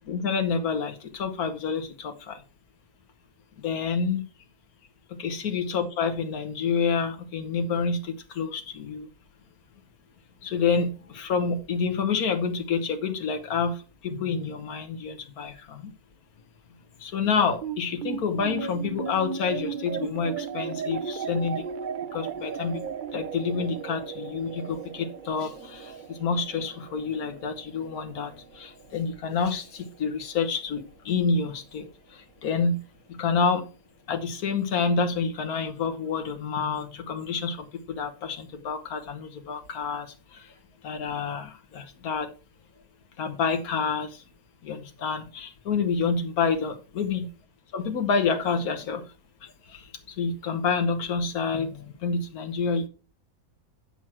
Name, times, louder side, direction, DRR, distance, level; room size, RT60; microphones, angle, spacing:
voice 1, 0.1-2.4 3.6-4.2 5.1-9.1 10.4-15.9 17.0-21.6 22.1-22.8 23.1-32.8 33.1-33.7 34.1-40.5 40.8-42.3 43.2-44.2 44.6-47.3 47.7-49.1 49.4-52.9, left 5 dB, 90° left, 6 dB, 1.6 m, -28 dB
sound 1, 17.6-30.2, right 7 dB, 50° right, 0.6 m, -36 dB
10.0 x 6.2 x 4.4 m, 0.34 s
omnidirectional pair, 1.5 m